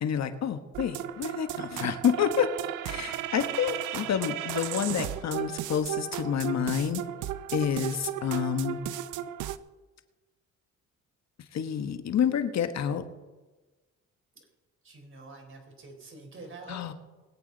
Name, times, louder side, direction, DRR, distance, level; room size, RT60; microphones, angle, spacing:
voice 1, 0.0-2.5 2.8-7.0 7.5-8.8 11.5-13.0 16.7-16.9, left 8 dB, 60° left, 9 dB, 1.4 m, -28 dB
sound 1, 0.7-9.6, right 11 dB, 85° right, 0.7 m, -35 dB
voice 2, 14.8-16.9, right 3 dB, 40° right, 3 dB, 4.2 m, -46 dB
22.0 x 8.5 x 4.0 m, 1.2 s
cardioid pair, 90°, 30 cm